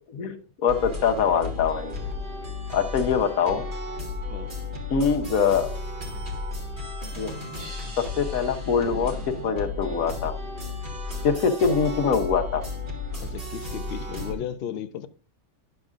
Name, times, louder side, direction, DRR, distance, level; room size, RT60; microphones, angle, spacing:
voice 1, 0.1-1.9 2.7-3.7 4.9-5.7 7.1-7.3 8.0-10.4 11.2-12.6, left 6 dB, 80° left, 1.4 m, -24 dB
sound 1, 0.7-14.3, left 3 dB, 35° right, 2.0 m, -34 dB
voice 2, 13.2-15.1, left 9 dB, 60° left, 0.6 m, -35 dB
10.5 x 6.8 x 2.5 m
omnidirectional pair, 1.5 m